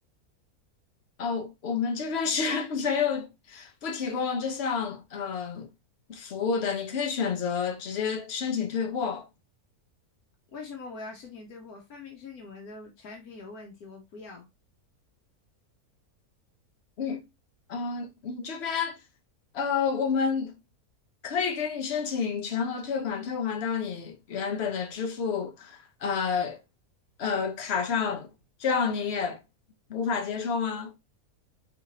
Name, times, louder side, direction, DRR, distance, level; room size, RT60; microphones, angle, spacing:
voice 1, 1.2-5.7 6.1-9.3 17.0-17.2 17.7-19.0 19.5-20.5 21.2-26.6 27.2-28.3 28.6-29.4 29.9-30.9, left 6 dB, 50° left, 1.1 m, -29 dB
voice 2, 10.5-14.5, left 3 dB, 75° left, 1.4 m, -43 dB
4.3 x 3.7 x 2.9 m
omnidirectional pair, 1.6 m